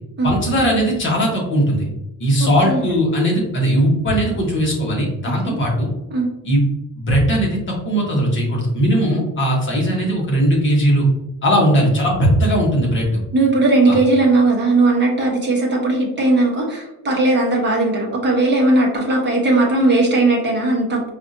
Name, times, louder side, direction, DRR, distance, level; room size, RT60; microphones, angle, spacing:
voice 1, 0.2-1.9 2.2-5.9 6.4-6.6 6.9-11.1 11.4-13.2 13.9-14.0, equal, 30° left, -2 dB, 1.1 m, -18 dB
voice 2, 2.4-2.9 5.4-5.6 6.1-6.3 13.3-21.0, right 2 dB, 30° right, -2 dB, 1.0 m, -17 dB
4.7 x 2.5 x 2.6 m, 0.95 s
cardioid pair, 160°, 37 cm